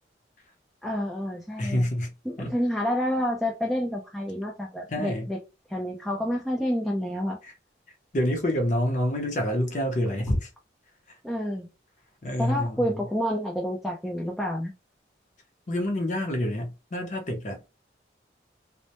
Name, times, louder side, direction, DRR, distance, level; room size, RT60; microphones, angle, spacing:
voice 1, 0.8-1.9 2.3-5.4 5.7-7.4 11.2-11.7 12.4-14.7, equal, ahead, 0.3 m, -29 dB
voice 2, 1.6-2.1 2.4-2.5 4.9-5.3 7.4-7.5 8.1-10.5 11.1-11.2 12.2-12.9 15.7-17.6, left 1 dB, 40° left, 0.6 m, -27 dB
2.1 x 2.1 x 2.8 m
head